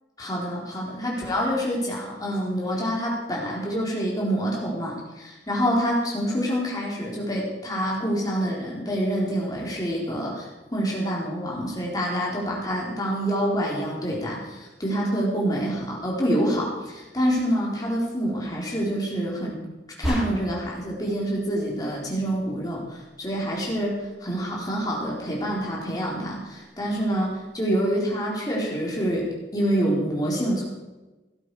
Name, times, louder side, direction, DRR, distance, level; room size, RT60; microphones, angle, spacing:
voice 1, 0.2-19.5 20.0-30.7, equal, 20° left, -3 dB, 4.0 m, -27 dB
sound 1, 20.0-20.8, equal, 5° right, 6.6 m, -29 dB
17.0 x 12.0 x 4.8 m, 1.1 s
head